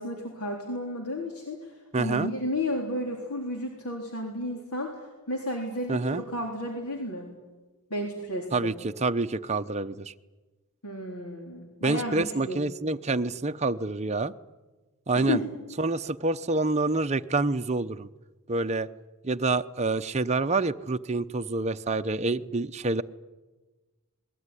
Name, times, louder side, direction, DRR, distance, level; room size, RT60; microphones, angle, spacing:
voice 1, 0.0-4.9 5.3-7.3 7.9-8.7 10.8-12.6 15.2-15.4, left 1 dB, 80° left, 1 dB, 3.9 m, -32 dB
voice 2, 1.9-2.3 5.9-6.2 8.5-10.1 11.8-14.3 15.1-15.4 15.8-18.1 18.5-18.9 19.2-23.0, right 3 dB, 30° right, 8 dB, 0.8 m, -27 dB
27.0 x 20.5 x 9.9 m, 1.2 s
head